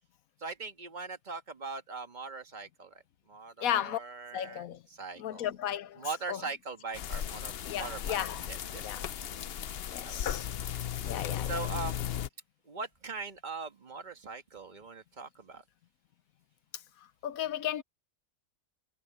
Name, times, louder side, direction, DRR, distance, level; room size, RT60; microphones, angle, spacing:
voice 1, 0.4-3.0 3.3-4.6 4.9-5.5 6.0-9.1 10.0-10.3 11.1-12.0 12.7-15.6, right 4 dB, 35° right, 1.7 m, -41 dB
voice 2, 3.6-4.0 4.3-4.8 5.2-6.4 7.6-8.5 8.8-9.1 9.9-10.5 11.0-11.5 17.2-17.8, left 11 dB, 90° left, 1.2 m, -34 dB
sound 1, 6.9-12.3, left 10 dB, 55° left, 0.8 m, -36 dB
omnidirectional pair, 1.4 m